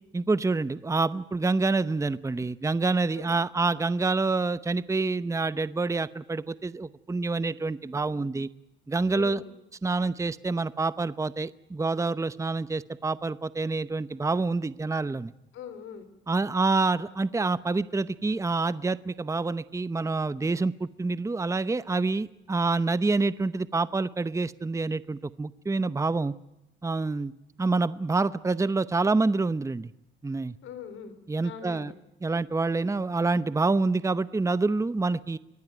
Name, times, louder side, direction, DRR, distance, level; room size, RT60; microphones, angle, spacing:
voice 1, 0.1-8.5 8.9-9.4 9.8-15.3 16.3-26.3 26.8-27.3 27.6-29.9 30.2-30.6 31.3-31.9 32.2-35.4, right 3 dB, 15° right, 16 dB, 0.8 m, -27 dB
voice 2, 9.1-9.5 15.5-16.0 30.6-31.1 31.4-31.9, left 7 dB, 80° left, 11 dB, 4.5 m, -41 dB
25.0 x 18.5 x 9.3 m, 0.90 s
cardioid pair, 90°, 20 cm